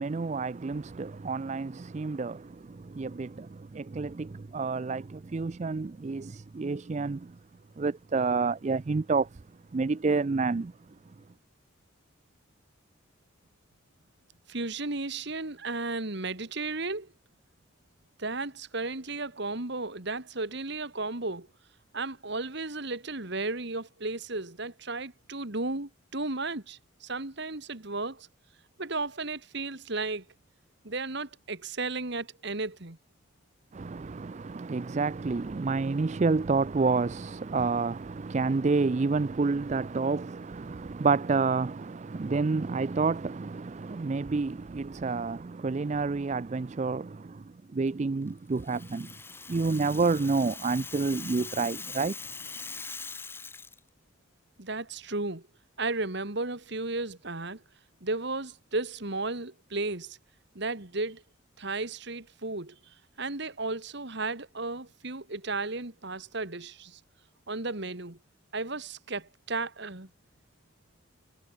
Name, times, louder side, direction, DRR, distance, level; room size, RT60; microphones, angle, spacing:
voice 1, 0.0-7.4 7.8-9.4 9.7-10.7 33.7-49.1 49.5-52.2, right 4 dB, 35° right, 0.4 m, -29 dB
voice 2, 14.5-17.1 18.2-21.5 21.9-28.3 28.8-30.2 30.8-33.0 54.6-55.4 55.8-57.6 58.0-60.2 60.6-61.2 61.6-62.8 63.2-67.0 67.5-68.2 68.5-70.1, right 3 dB, 55° right, 2.0 m, -34 dB
Rattle (instrument), 48.6-53.8, left 4 dB, 10° left, 0.9 m, -42 dB
head